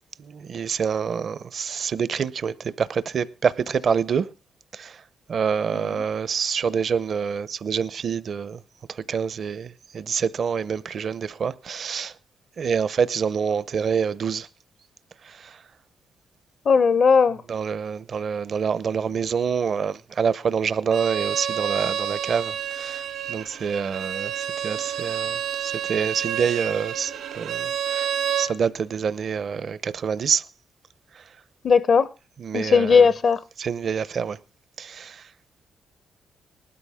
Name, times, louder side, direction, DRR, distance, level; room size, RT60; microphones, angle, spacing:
voice 1, 0.2-4.3 4.7-5.0 5.3-8.6 9.1-12.1 12.6-14.5 15.3-15.5 17.5-23.0 23.3-28.1 28.4-30.4 32.4-33.1 33.6-34.4 34.8-35.2, right 6 dB, 60° right, 0.7 m, -26 dB
voice 2, 16.6-17.4 31.6-32.1 32.5-33.4, left 5 dB, 55° left, 0.8 m, -17 dB
Bowed string instrument, 20.9-28.5, right 9 dB, 85° right, 2.8 m, -29 dB
19.0 x 13.0 x 3.6 m
cardioid pair, 75°, 0 cm